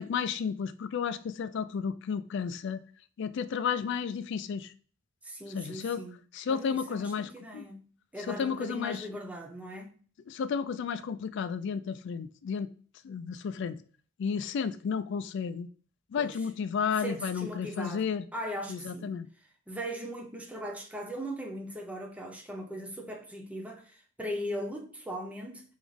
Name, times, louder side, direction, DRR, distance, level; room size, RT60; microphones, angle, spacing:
voice 1, 0.0-2.8 3.2-4.7 5.5-6.0 6.3-7.7 8.3-9.0 10.3-12.7 13.0-13.8 14.2-15.7 16.1-18.2 18.7-19.3, left 6 dB, 60° left, 0.3 m, -32 dB
voice 2, 5.2-6.2 6.5-7.8 8.1-10.0 16.2-16.3 17.0-18.1 18.3-19.2 19.7-25.6, equal, 5° right, 0.6 m, -39 dB
3.6 x 3.0 x 3.6 m
head